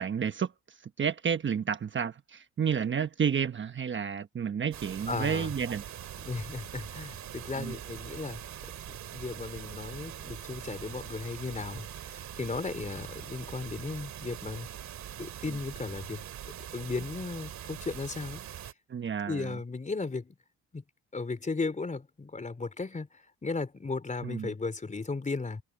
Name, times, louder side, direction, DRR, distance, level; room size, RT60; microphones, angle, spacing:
voice 1, 0.0-5.8 7.6-7.8 18.9-19.6 24.2-24.5, right 7 dB, 40° right, 1.1 m, -31 dB
sound 1, 4.7-18.7, right 10 dB, 70° right, 2.2 m, -43 dB
voice 2, 5.1-5.5 6.2-8.4 8.9-14.7 15.2-16.2 16.7-18.4 19.3-20.4 20.7-20.8 21.1-25.6, left 3 dB, 25° left, 3.7 m, -36 dB
cardioid pair, 90°, 30 cm